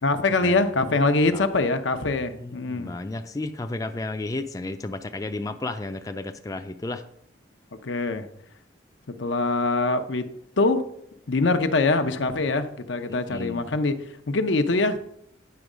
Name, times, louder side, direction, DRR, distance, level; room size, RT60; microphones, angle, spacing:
voice 1, 0.0-2.9 7.8-8.3 9.2-10.3 10.6-10.9 11.3-15.0, left 3 dB, 90° left, 8 dB, 0.7 m, -23 dB
voice 2, 2.3-7.0 13.1-13.8, left 2 dB, 20° left, 7 dB, 0.4 m, -33 dB
9.5 x 5.3 x 5.0 m, 0.73 s
head